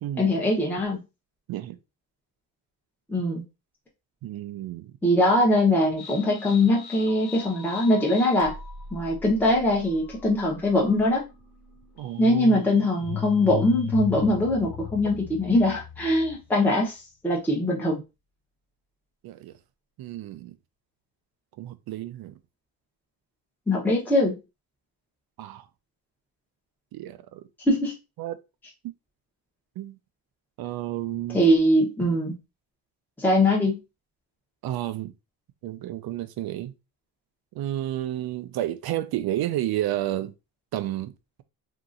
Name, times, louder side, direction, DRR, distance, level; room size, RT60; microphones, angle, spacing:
voice 1, 0.2-1.0 3.1-3.4 5.0-8.5 8.9-11.2 12.2-17.0 17.2-18.0 23.7-24.4 27.7-27.9 31.3-32.3 33.2-33.8, left 1 dB, 5° left, 0.8 m, -22 dB
voice 2, 4.2-4.9 12.0-12.6 19.2-19.5 20.0-20.5 21.6-22.4 25.4-25.6 26.9-27.4 28.2-28.4 29.8-29.9 30.6-31.4 34.6-35.1 35.6-36.7 37.5-40.3 40.7-41.1, right 13 dB, 65° right, 0.5 m, -31 dB
sound 1, 6.0-16.6, left 9 dB, 80° left, 1.2 m, -38 dB
2.9 x 2.7 x 2.5 m
cardioid pair, 105°, 40 cm